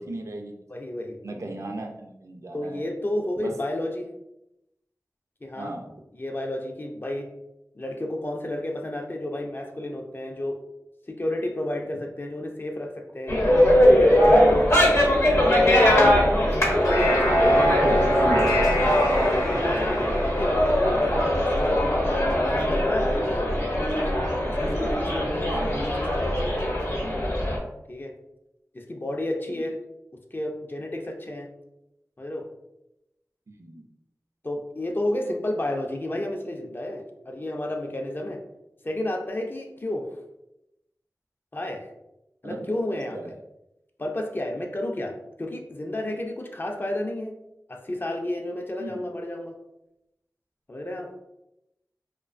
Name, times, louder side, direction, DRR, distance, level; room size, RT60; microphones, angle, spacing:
voice 1, 0.0-0.5 1.2-2.9 3.4-3.5 5.6-5.9 14.4-14.7 17.4-19.0 25.5-25.8 29.5-29.7 33.5-33.9 42.4-42.6 42.9-43.4 48.8-49.0, right 1 dB, 60° right, 2 dB, 0.4 m, -34 dB
voice 2, 0.7-1.2 2.5-4.1 5.4-5.7 6.1-7.3 7.7-10.6 11.1-13.4 13.8-15.3 16.0-16.3 16.6-18.1 19.2-22.1 22.5-24.1 24.6-26.7 27.9-28.1 28.7-29.8 30.3-31.5 32.2-32.5 34.4-38.4 38.8-40.1 41.5-41.9 42.4-43.3 44.0-47.3 47.7-49.6 50.7-51.1, left 1 dB, 35° left, 2 dB, 0.4 m, -31 dB
sound 1, 13.3-27.6, left 1 dB, 55° left, 0.8 m, -21 dB
sound 2, 16.5-22.1, equal, 90° left, 0.6 m, -25 dB
2.3 x 2.2 x 2.4 m, 0.87 s
wide cardioid pair, 50°, 6 cm